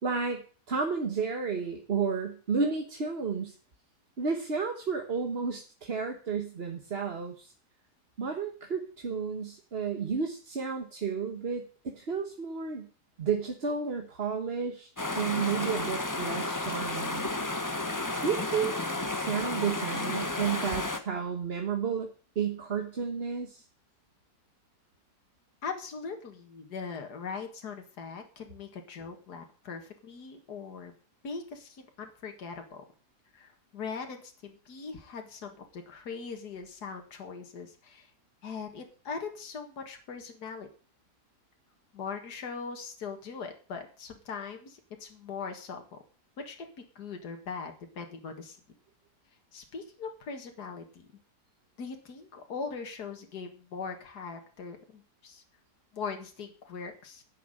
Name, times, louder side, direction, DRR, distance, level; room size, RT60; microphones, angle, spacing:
voice 1, 0.0-3.5 4.2-7.5 8.2-12.9 13.2-14.9 15.1-17.3 18.2-18.8 19.1-23.6, right 5 dB, 40° right, 4 dB, 1.4 m, -32 dB
sound 1, 15.0-21.0, left 2 dB, 15° left, 1.0 m, -32 dB
voice 2, 25.6-30.9 31.2-32.8 33.3-38.1 38.4-40.7 41.9-46.0 46.4-48.6 49.5-51.1 51.8-55.4 55.9-57.2, left 5 dB, 75° left, 4 dB, 2.3 m, -40 dB
10.0 x 7.2 x 9.0 m, 0.40 s
omnidirectional pair, 1.7 m